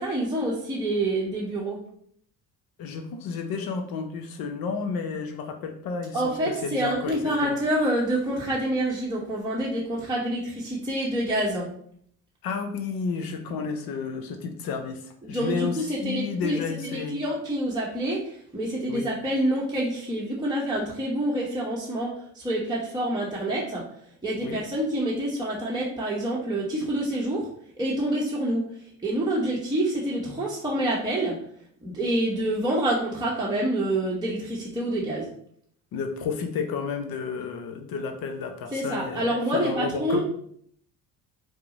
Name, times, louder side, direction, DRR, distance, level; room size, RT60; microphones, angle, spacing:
voice 1, 0.0-1.8 6.1-11.7 15.2-23.8 24.2-27.5 27.8-28.7 29.0-31.4 31.8-35.3 38.7-40.2, right 1 dB, 10° right, -5 dB, 0.8 m, -27 dB
voice 2, 2.8-7.1 7.4-7.6 12.4-17.2 18.9-19.1 24.4-24.6 35.9-40.2, left 5 dB, 60° left, 5 dB, 0.6 m, -31 dB
4.4 x 2.0 x 2.6 m, 0.64 s
hypercardioid pair, 70°, 41 cm